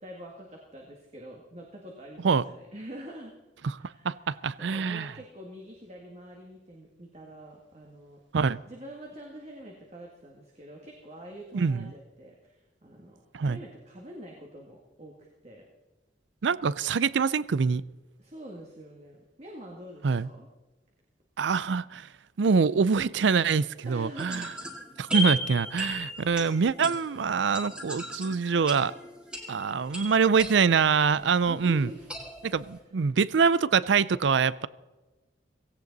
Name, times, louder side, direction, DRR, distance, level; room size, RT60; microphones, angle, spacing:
voice 1, 0.0-3.3 3.8-8.2 8.7-15.1 15.4-15.6 18.2-20.5 23.9-24.5 31.5-32.1, right 1 dB, 35° right, -1 dB, 1.9 m, -45 dB
voice 2, 4.0-5.1 8.3-8.6 11.5-11.9 13.3-13.6 16.4-17.8 20.0-20.3 21.4-22.1 22.4-24.5 25.0-28.9 29.5-31.9 32.4-34.7, right 5 dB, 80° right, 20 dB, 0.5 m, -25 dB
sound 1, 24.2-31.4 32.1-32.8, equal, 5° right, 2.1 m, -36 dB
17.0 x 17.0 x 4.1 m, 1.2 s
head